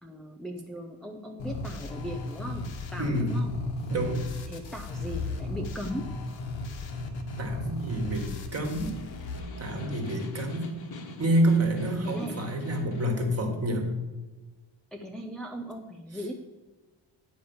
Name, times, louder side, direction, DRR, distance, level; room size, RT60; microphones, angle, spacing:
voice 1, 0.0-3.6 4.5-6.1 12.0-12.5 14.9-16.3, equal, ahead, 2 dB, 0.4 m, -38 dB
sound 1, 1.4-9.4, left 2 dB, 75° left, 1.5 m, -35 dB
voice 2, 3.0-3.4 3.9-4.2 7.4-9.0 9.6-10.7 11.2-13.9, right 1 dB, 35° right, 4 dB, 1.5 m, -28 dB
Snare drum, 8.3-13.2, left 2 dB, 55° left, 1.2 m, -43 dB
9.2 x 5.1 x 7.0 m, 1.2 s
wide cardioid pair, 170°, 45 cm